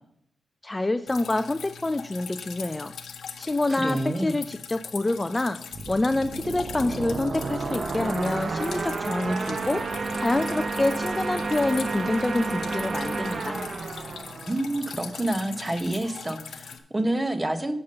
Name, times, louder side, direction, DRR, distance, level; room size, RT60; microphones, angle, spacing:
voice 1, 0.6-2.9 3.4-5.6 5.9-9.8 10.2-13.6, left 2 dB, 20° left, 10 dB, 0.3 m, -27 dB
Drip, 1.1-16.8, left 6 dB, 85° left, 0.6 m, -41 dB
voice 2, 3.7-4.4 14.4-17.7, right 1 dB, 20° right, 9 dB, 0.8 m, -28 dB
sound 1, 5.7-15.3, right 3 dB, 50° right, 0.6 m, -31 dB
7.0 x 5.2 x 6.5 m, 0.75 s
cardioid pair, 95°, 0 cm